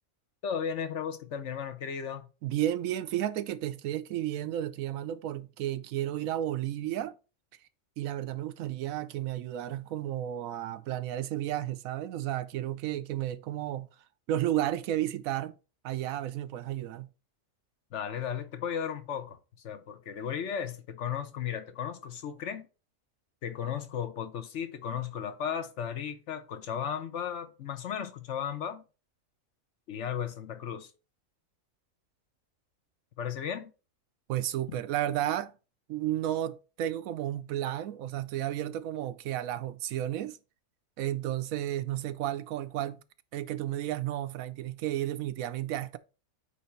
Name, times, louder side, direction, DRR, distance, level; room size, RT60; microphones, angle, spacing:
voice 1, 0.4-2.3 17.9-19.4 19.6-22.7 23.4-28.8 29.9-30.9 33.2-33.7 34.7-34.8, left 8 dB, 65° left, 1.1 m, -35 dB
voice 2, 2.4-7.2 8.0-13.9 14.3-15.5 15.8-17.1 34.3-35.5 35.9-40.4 41.0-43.0 43.3-46.0, right 12 dB, 90° right, 1.0 m, -32 dB
8.8 x 3.5 x 4.3 m
omnidirectional pair, 1.4 m